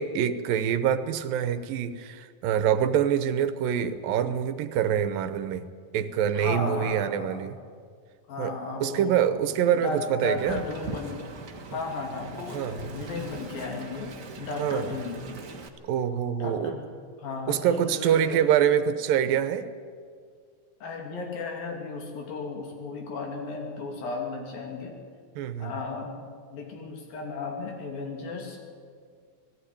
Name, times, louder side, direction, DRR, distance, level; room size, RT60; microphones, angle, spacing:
voice 1, 0.0-5.7 5.9-7.6 8.4-8.5 8.8-10.6 12.5-12.9 14.6-14.9 15.8-16.7 17.5-19.7 25.4-25.7, right 9 dB, 80° right, 12 dB, 2.5 m, -25 dB
voice 2, 6.3-7.5 8.3-9.3 9.7-11.2 11.7-15.2 16.4-16.8 17.2-18.4 20.8-25.0 25.6-26.2 26.5-28.6, left 3 dB, 85° left, 1 dB, 4.5 m, -35 dB
Wind, 10.4-15.7, right 4 dB, 55° right, 0.9 m, -41 dB
18.5 x 15.0 x 9.9 m, 2.1 s
omnidirectional pair, 4.0 m